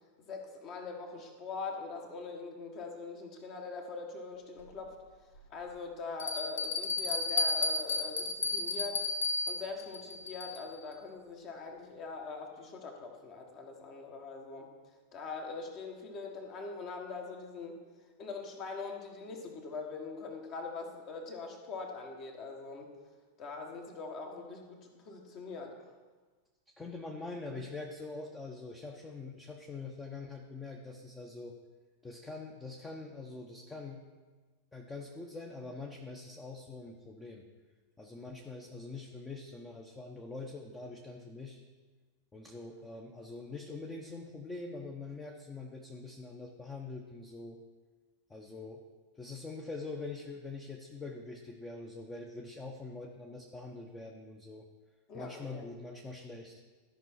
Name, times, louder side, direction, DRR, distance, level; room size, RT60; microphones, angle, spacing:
voice 1, 0.2-4.9 5.5-9.1 9.5-14.7 15.1-17.8 18.2-22.9 23.4-25.7 55.1-55.6, left 4 dB, 35° left, 2 dB, 1.6 m, -42 dB
Bell, 4.6-4.7 5.3-5.4 6.2-10.8, left 3 dB, 65° left, 1.0 m, -33 dB
voice 2, 26.8-31.5 32.0-34.0 34.7-37.4 38.0-41.6 42.3-47.6 48.3-48.8 49.1-54.7 55.1-56.6, left 3 dB, 15° left, 1 dB, 0.9 m, -44 dB
13.5 x 5.5 x 4.6 m, 1.3 s
figure-of-eight pair, 90°, 0 cm